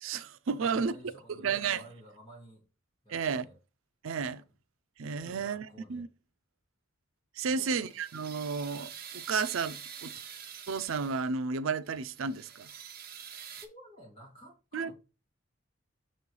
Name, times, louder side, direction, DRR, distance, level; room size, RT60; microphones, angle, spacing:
voice 1, 0.0-0.9 1.4-1.8 3.1-3.5 4.0-4.4 5.0-6.1 7.4-10.1 10.7-12.7 14.7-14.9, right 5 dB, 80° right, 0.5 m, -32 dB
voice 2, 0.6-2.6 3.0-3.6 4.1-4.5 5.2-6.1 7.5-7.8 12.6-12.8 13.6-14.9, equal, 25° left, 2.2 m, -53 dB
sound 1, 7.4-11.4 11.9-13.7, right 8 dB, 45° right, 0.9 m, -46 dB
6.6 x 3.2 x 5.4 m
head